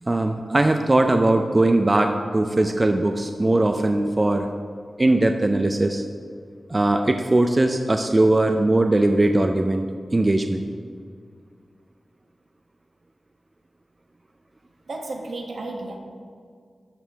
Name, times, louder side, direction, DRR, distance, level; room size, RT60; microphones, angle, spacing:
voice 1, 0.0-4.5 5.0-6.0 6.7-10.7, right 2 dB, 30° right, 5 dB, 0.4 m, -20 dB
voice 2, 14.9-16.0, right 2 dB, 70° right, 2 dB, 1.0 m, -33 dB
12.5 x 5.5 x 3.4 m, 2.1 s
wide cardioid pair, 80°, 0 cm